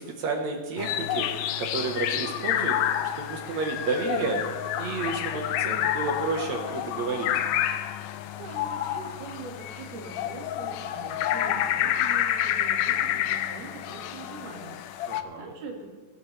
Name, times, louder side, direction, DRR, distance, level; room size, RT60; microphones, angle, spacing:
voice 1, 0.0-4.4 4.8-7.3 15.1-15.5, right 4 dB, 60° right, 2 dB, 2.0 m, -31 dB
sound 1, 0.8-15.2, left 11 dB, 85° left, 1.9 m, -29 dB
voice 2, 8.4-15.9, right 4 dB, 85° right, 0 dB, 4.0 m, -43 dB
20.0 x 11.5 x 3.3 m, 1.4 s
omnidirectional pair, 4.3 m